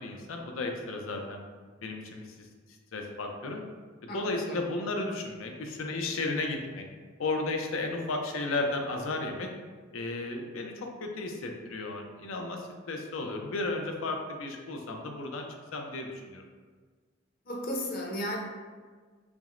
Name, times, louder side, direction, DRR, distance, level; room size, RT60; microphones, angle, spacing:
voice 1, 0.0-1.4 1.8-2.5 2.9-3.6 4.0-6.8 7.2-9.5 9.9-15.5 15.7-16.4, left 2 dB, 85° left, 3 dB, 0.5 m, -34 dB
voice 2, 4.1-4.6 17.5-18.4, equal, 45° left, -2 dB, 0.7 m, -34 dB
5.8 x 2.1 x 2.5 m, 1.5 s
head